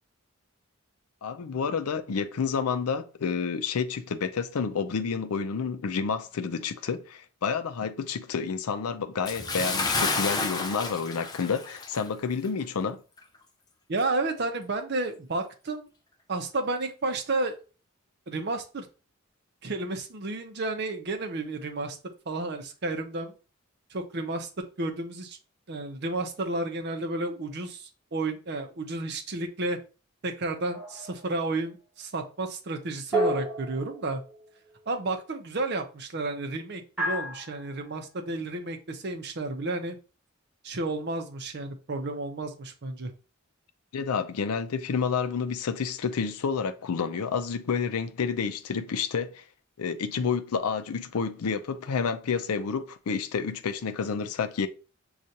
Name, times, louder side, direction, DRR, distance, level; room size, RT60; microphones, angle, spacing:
voice 1, 1.2-13.0 43.9-49.4 49.8-54.7, left 5 dB, 90° left, 0.5 m, -29 dB
Bathtub (filling or washing) / Splash splatter, 9.2-12.1 12.4-12.6 13.2-13.3, left 3 dB, 20° left, 0.4 m, -30 dB
voice 2, 13.9-15.9 16.3-17.6 18.3-18.9 19.6-22.0 22.3-23.3 23.9-24.5 24.8-25.4 25.7-29.8 30.2-34.2 34.9-40.0 40.6-43.1, right 2 dB, 50° right, 0.6 m, -31 dB
sound 1, 30.7-31.3 33.1-34.5 37.0-37.8, right 1 dB, 5° right, 1.0 m, -31 dB
6.4 x 2.4 x 2.8 m
head